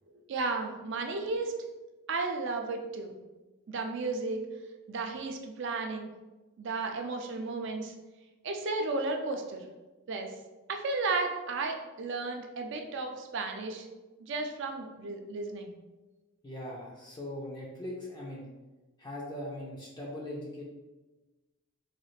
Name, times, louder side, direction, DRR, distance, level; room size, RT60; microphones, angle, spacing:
voice 1, 0.3-1.5 2.1-3.2 3.7-4.4 4.9-6.1 6.6-7.9 8.4-9.6 10.1-10.3 10.7-13.9 14.2-15.7, right 3 dB, 55° right, 3 dB, 0.4 m, -33 dB
voice 2, 16.4-18.5 19.0-20.6, left 1 dB, 20° left, -4 dB, 0.4 m, -40 dB
3.9 x 2.4 x 3.1 m, 1.2 s
head